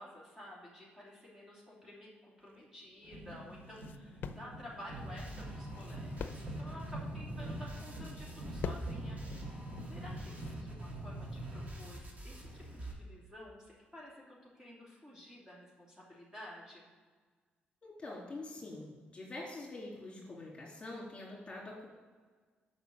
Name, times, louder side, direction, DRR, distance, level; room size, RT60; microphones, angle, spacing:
voice 1, 0.0-9.2 9.9-16.9, left 1 dB, 15° right, -5 dB, 2.9 m, -52 dB
sound 1, 2.4-10.6, left 7 dB, 65° left, 0.5 m, -48 dB
sound 2, 3.0-11.8 12.7-12.8, right 1 dB, 70° right, 2.4 m, -48 dB
sound 3, 4.9-12.9, right 1 dB, 45° right, 2.3 m, -44 dB
voice 2, 7.1-7.6 17.8-21.9, left 2 dB, 30° left, -3 dB, 3.1 m, -46 dB
7.9 x 5.6 x 7.7 m, 1.5 s
cardioid pair, 100°, 4 cm